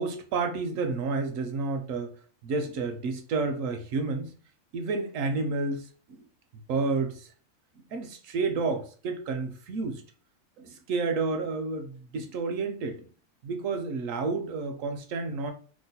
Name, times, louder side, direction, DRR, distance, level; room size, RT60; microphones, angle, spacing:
voice 1, 0.0-2.2 2.4-4.3 4.7-6.2 6.7-7.3 7.8-10.0 10.6-13.1 13.4-15.5, right 4 dB, 70° right, 6 dB, 0.9 m, -30 dB
2.9 x 2.1 x 4.0 m, 0.40 s
omnidirectional pair, 1.6 m